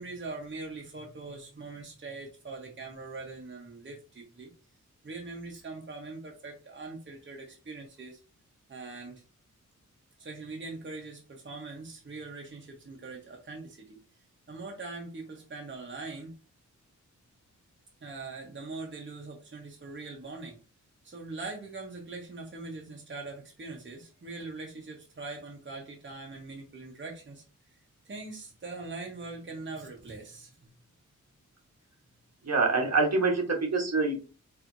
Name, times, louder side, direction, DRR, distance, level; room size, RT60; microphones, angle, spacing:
voice 1, 0.0-4.5 5.0-8.2 8.7-9.2 10.2-14.0 14.5-16.3 18.0-20.6 21.0-27.4 28.0-30.6, right 3 dB, 35° right, 0 dB, 1.0 m, -42 dB
voice 2, 32.4-34.1, right 3 dB, 55° right, 1 dB, 1.2 m, -25 dB
4.5 x 3.3 x 2.6 m, 0.33 s
wide cardioid pair, 95°, 31 cm